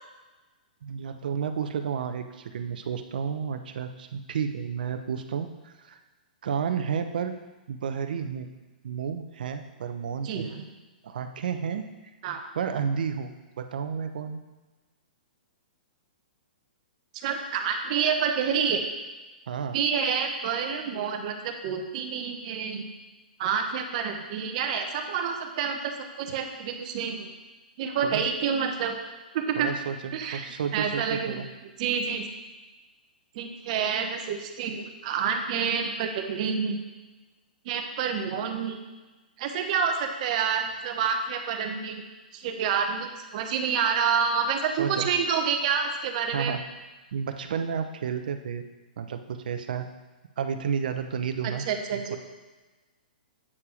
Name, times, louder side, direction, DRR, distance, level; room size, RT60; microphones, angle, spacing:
voice 1, 0.8-6.0 6.4-7.3 7.7-8.5 8.8-10.5 11.0-11.9 12.5-13.3 13.6-14.4 19.5-19.8 26.3-26.4 28.0-28.2 29.6-31.4 44.8-45.1 46.3-46.6 47.1-48.6 49.0-49.9 50.4-51.6 51.9-52.2, right 7 dB, 65° right, 8 dB, 0.8 m, -31 dB
voice 2, 10.2-10.7 12.2-12.4 17.2-18.8 19.7-22.8 23.4-27.3 27.8-29.0 29.3-29.7 30.1-30.5 30.7-31.4 31.8-32.2 33.3-36.8 37.6-38.8 39.4-42.0 42.3-46.5 51.6-52.2, right 6 dB, 50° right, 5 dB, 1.1 m, -28 dB
8.6 x 4.7 x 5.0 m, 1.2 s
hypercardioid pair, 120°, 5 cm